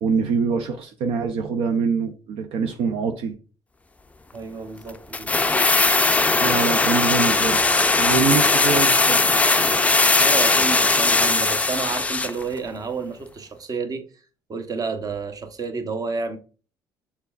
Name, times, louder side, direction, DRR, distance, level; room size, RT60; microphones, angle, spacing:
voice 1, 0.0-3.3 6.4-7.7 8.0-9.2, right 5 dB, 70° right, 0.5 m, -24 dB
voice 2, 4.3-5.3 10.2-14.0 14.5-16.4, right 4 dB, 40° right, 0.8 m, -30 dB
sound 1, 5.1-12.4 12.7-12.8, left 3 dB, 15° left, 0.4 m, -19 dB
6.6 x 3.5 x 2.3 m
supercardioid pair, 75°, 10 cm